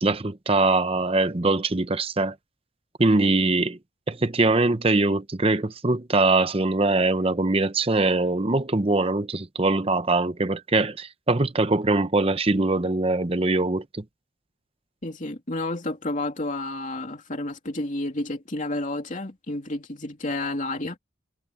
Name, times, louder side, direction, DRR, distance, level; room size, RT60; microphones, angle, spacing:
voice 1, 0.0-2.3 3.0-3.8 4.1-14.0, right 2 dB, 30° right, 0.8 m, -22 dB
voice 2, 15.0-21.0, left 2 dB, 40° left, 3.0 m, -30 dB
head